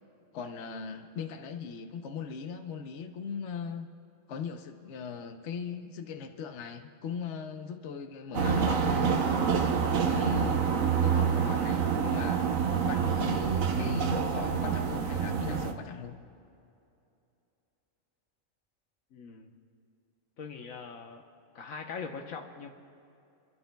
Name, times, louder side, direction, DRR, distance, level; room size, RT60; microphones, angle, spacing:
voice 1, 0.3-3.9 4.3-9.1 10.1-12.4 12.8-16.2, left 6 dB, 65° left, 6 dB, 1.1 m, -39 dB
sound 1, 8.3-15.7, right 6 dB, 85° right, 1.3 m, -27 dB
voice 2, 19.1-19.5 20.4-21.2 21.5-22.7, left 5 dB, 90° left, 3 dB, 1.4 m, -41 dB
30.0 x 12.0 x 2.3 m, 2.7 s
omnidirectional pair, 1.4 m